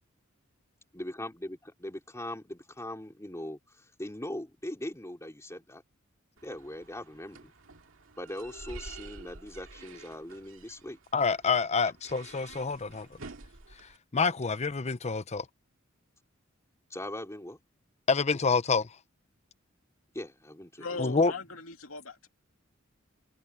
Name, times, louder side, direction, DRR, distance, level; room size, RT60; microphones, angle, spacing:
voice 1, 0.9-5.8 6.4-7.5 8.2-11.0 16.9-17.6 20.1-21.4, left 1 dB, 15° left, 3.3 m, -40 dB
sound 1, 6.4-14.0, right 3 dB, 70° right, 2.3 m, -49 dB
voice 2, 11.1-13.1 14.1-15.4 18.1-18.9 21.0-21.3, left 4 dB, 35° left, 0.7 m, -27 dB
voice 3, 20.8-22.3, left 4 dB, 85° left, 2.5 m, -39 dB
head